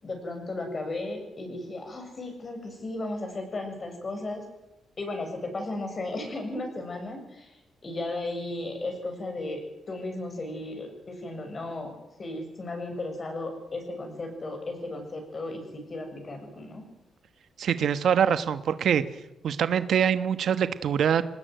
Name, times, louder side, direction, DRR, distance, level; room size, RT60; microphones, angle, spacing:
voice 1, 0.0-4.4 5.0-7.6 7.8-9.6 9.9-11.9 12.2-16.9, left 2 dB, 30° left, 4 dB, 7.1 m, -35 dB
voice 2, 17.6-19.0 19.4-21.2, right 8 dB, 65° right, 11 dB, 1.2 m, -24 dB
24.5 x 19.5 x 9.3 m, 0.94 s
cardioid pair, 135°, 0 cm